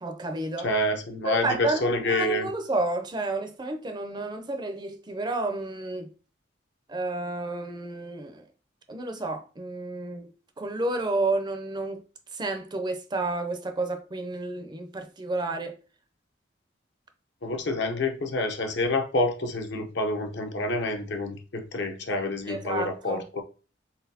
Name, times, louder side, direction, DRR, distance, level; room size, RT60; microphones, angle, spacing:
voice 1, 0.0-0.7 1.2-6.1 6.9-8.4 8.9-10.3 10.6-12.0 12.3-15.8 22.5-23.2, right 2 dB, 25° right, 0.5 m, -30 dB
voice 2, 0.6-2.5 17.4-23.4, left 2 dB, 60° left, 0.8 m, -28 dB
4.1 x 3.8 x 2.7 m
head